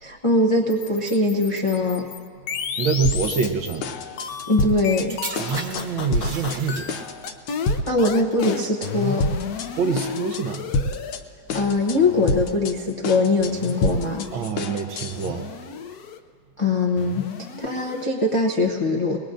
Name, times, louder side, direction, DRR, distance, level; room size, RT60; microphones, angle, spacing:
voice 1, 0.0-2.1 4.5-5.2 7.9-9.2 11.5-14.3 16.6-17.3 17.6-19.2, left 2 dB, 50° left, -1 dB, 0.3 m, -22 dB
sound 1, 0.7-3.8 4.2-11.2 11.5-12.6 13.4-14.5 15.1-16.2 17.0-18.1, left 7 dB, 65° left, 0.9 m, -33 dB
voice 2, 2.8-3.9 5.4-7.0 9.8-10.7 14.3-15.5, right 5 dB, 70° right, 5 dB, 1.6 m, -26 dB
sound 2, 3.1-3.5 3.8-5.1 5.4-5.8 6.1-6.6 6.9-8.1 8.4-8.9 9.2-9.7 10.0-11.2 11.5-12.0 12.3-15.3, left 2 dB, 90° left, 1.6 m, -27 dB
sound 3, 4.2-7.3 8.0-8.3, right 3 dB, 50° right, 1.7 m, -37 dB
22.5 x 19.5 x 2.6 m, 2.3 s
omnidirectional pair, 2.2 m